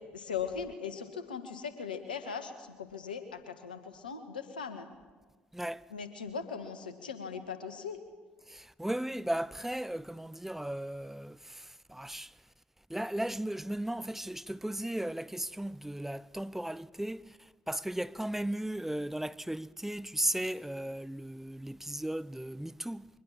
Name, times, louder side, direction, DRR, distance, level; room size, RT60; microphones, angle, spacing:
voice 1, 0.0-4.9 5.9-8.0, left 6 dB, 90° left, 1.6 m, -39 dB
voice 2, 5.5-5.8 8.5-12.4 12.9-23.1, right 1 dB, 5° right, 0.7 m, -36 dB
23.5 x 19.5 x 7.4 m
hypercardioid pair, 50°, 5 cm